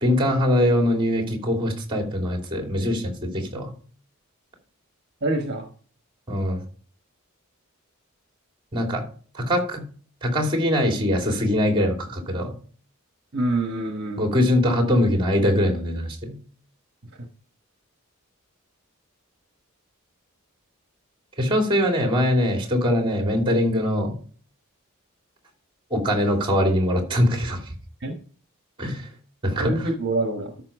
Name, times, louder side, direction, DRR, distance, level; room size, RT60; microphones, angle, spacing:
voice 1, 0.0-3.7 6.3-6.6 8.7-9.0 9.3-9.8 10.2-12.5 14.2-16.4 21.4-24.1 25.9-27.6 28.8-29.1 29.4-29.9, left 1 dB, 25° right, 2 dB, 2.9 m, -22 dB
voice 2, 5.2-5.7 13.3-14.4 28.0-28.1 29.6-30.5, right 2 dB, 55° right, 4 dB, 1.3 m, -26 dB
13.0 x 5.7 x 5.0 m, 0.44 s
head